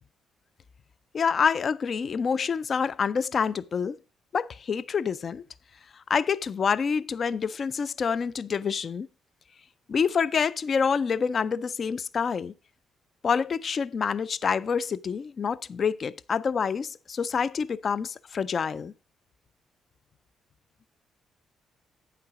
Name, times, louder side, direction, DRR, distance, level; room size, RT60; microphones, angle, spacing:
voice 1, 1.1-4.0 4.3-5.4 5.9-9.1 9.9-12.5 13.2-18.9, left 6 dB, 45° left, 0.4 m, -27 dB
9.1 x 5.8 x 4.7 m
cardioid pair, 90°, 0 cm